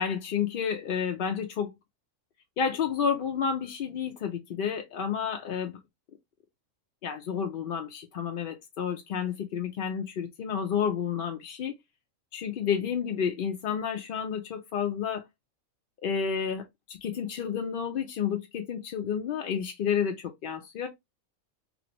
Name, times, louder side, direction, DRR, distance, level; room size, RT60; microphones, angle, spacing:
voice 1, 0.0-1.7 2.6-5.8 7.0-11.8 12.3-15.2 16.0-20.9, left 7 dB, 65° left, 0.5 m, -30 dB
3.1 x 2.5 x 2.9 m
omnidirectional pair, 1.4 m